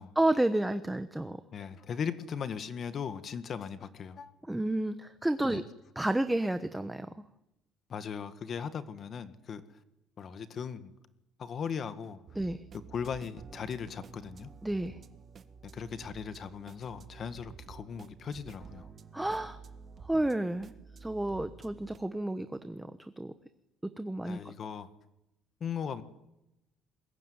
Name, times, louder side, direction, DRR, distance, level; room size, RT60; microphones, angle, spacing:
voice 1, 0.1-1.4 4.5-5.6 5.9-7.1 12.3-12.6 14.6-15.0 19.1-19.6 20.0-20.7 21.0-23.3 23.8-24.4, right 1 dB, 5° right, 10 dB, 1.1 m, -31 dB
voice 2, 1.5-4.3 5.5-5.6 7.9-9.6 10.2-10.9 11.4-12.2 12.9-14.5 15.7-18.9 24.2-24.9 25.6-26.0, left 7 dB, 40° left, 11 dB, 1.7 m, -38 dB
sound 1, 12.3-22.0, right 6 dB, 35° right, 1.7 m, -51 dB
28.5 x 21.5 x 9.7 m, 0.90 s
cardioid pair, 150°, 0 cm